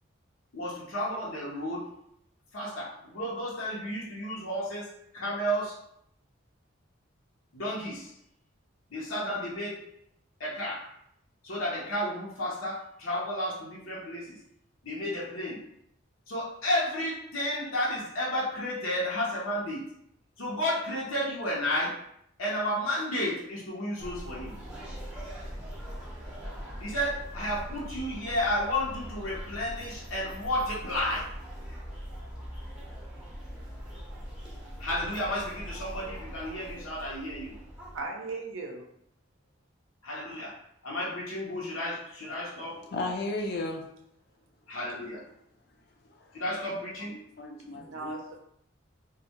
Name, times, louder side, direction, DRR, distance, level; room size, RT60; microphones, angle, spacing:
voice 1, 0.5-1.9 2.5-4.9 5.1-5.8 7.5-8.1 8.9-9.8 10.4-10.9 11.4-14.4 14.8-15.6 16.3-19.9 20.4-22.0 22.4-24.6 26.8-31.3 34.8-37.6 40.0-40.6 40.8-42.8 44.7-45.2 46.3-47.2, left 1 dB, 85° left, -5 dB, 0.7 m, -32 dB
sound 1, 24.0-38.0, equal, 5° right, 0.5 m, -41 dB
voice 2, 37.9-38.9 47.7-48.4, right 3 dB, 75° right, 2 dB, 0.5 m, -38 dB
voice 3, 42.6-43.8 46.0-46.3 47.1-48.2, left 2 dB, 50° left, 1 dB, 0.4 m, -35 dB
2.2 x 2.1 x 2.8 m, 0.72 s
head